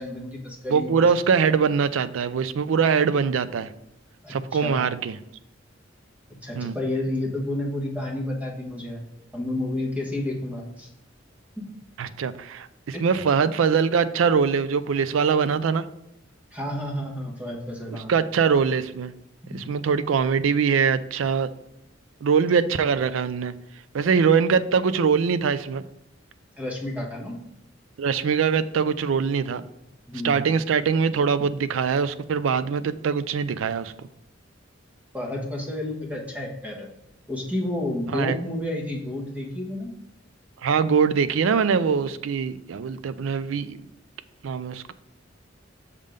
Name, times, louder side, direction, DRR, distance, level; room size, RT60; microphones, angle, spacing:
voice 1, 0.0-1.1 4.2-4.9 6.4-9.0 9.3-10.9 11.6-11.7 12.9-13.0 16.5-18.1 19.5-19.6 26.6-27.4 30.1-30.4 35.1-36.9 37.3-39.9, left 1 dB, 10° right, -1 dB, 1.3 m, -30 dB
voice 2, 0.7-3.7 4.3-5.2 6.6-6.8 12.0-15.9 18.1-19.1 19.5-21.5 22.2-23.5 23.9-25.8 28.0-29.6 30.2-33.9 38.1-38.3 40.6-43.8 44.4-44.9, right 6 dB, 80° right, 14 dB, 0.4 m, -22 dB
6.6 x 3.6 x 5.1 m, 0.83 s
head